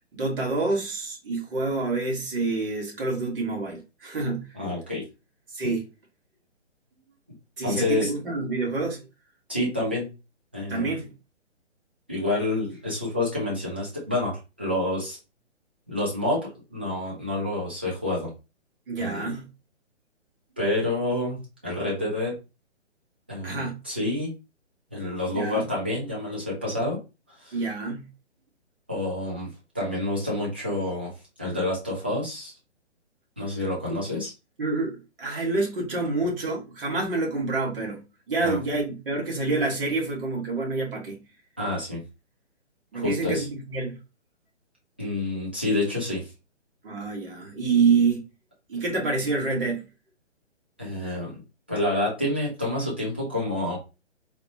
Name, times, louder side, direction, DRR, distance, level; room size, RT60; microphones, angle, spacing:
voice 1, 0.1-4.4 5.5-5.8 7.6-9.0 10.7-11.1 18.9-19.4 23.4-23.7 25.3-25.6 27.5-28.0 34.6-41.2 42.9-43.9 46.8-48.2 48.7-49.8, right 3 dB, 50° right, 1.5 m, -27 dB
voice 2, 4.5-5.0 7.6-8.1 9.5-10.1 10.5-11.0 12.1-15.2 15.9-18.3 19.0-19.3 20.6-22.3 23.3-24.3 24.9-27.0 27.4-27.6 28.9-29.5 29.7-31.1 31.4-32.5 33.4-34.3 38.4-38.6 41.6-42.0 42.9-43.5 45.0-46.3 50.8-51.4 51.7-53.8, left 1 dB, 10° right, 0.4 m, -28 dB
4.0 x 2.2 x 2.9 m
figure-of-eight pair, 135°, 36 cm